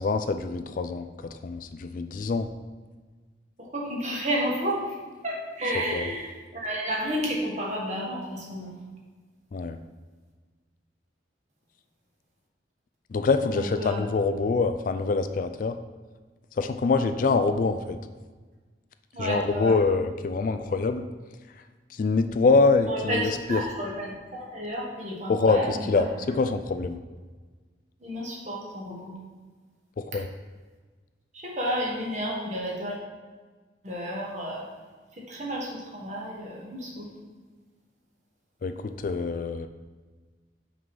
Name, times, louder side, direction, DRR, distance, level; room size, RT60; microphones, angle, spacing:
voice 1, 0.0-2.5 5.7-6.1 9.5-9.8 13.1-15.8 16.6-18.0 19.2-21.1 21.9-23.6 25.3-27.0 30.0-30.3 38.6-39.7, left 4 dB, 45° left, 8 dB, 0.3 m, -25 dB
voice 2, 3.6-4.9 5.2-8.8 13.5-14.1 19.1-19.8 22.9-26.1 28.0-29.2 31.3-33.0 33.8-34.6 35.2-37.1, equal, 40° right, -3 dB, 1.6 m, -31 dB
5.9 x 5.5 x 4.8 m, 1.4 s
head